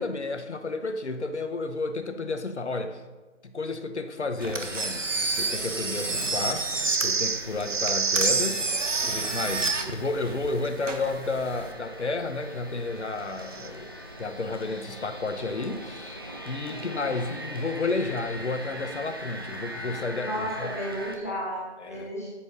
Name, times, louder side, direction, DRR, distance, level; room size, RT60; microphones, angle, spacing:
voice 1, 0.0-3.0 3.4-6.7 7.0-8.7 9.0-13.9 14.2-20.7 21.8-22.1, left 3 dB, 65° left, 8 dB, 1.3 m, -31 dB
sound 1, 4.4-21.2, equal, 20° right, 0.7 m, -42 dB
Engine, 4.4-11.7, right 3 dB, 80° right, 1.5 m, -30 dB
sound 2, 6.8-9.4 13.4-13.7, right 4 dB, 55° right, 0.8 m, -28 dB
voice 2, 16.6-17.2 20.2-22.3, equal, 15° left, -5 dB, 0.9 m, -34 dB
13.5 x 7.7 x 4.1 m, 1.3 s
figure-of-eight pair, 160°, 37 cm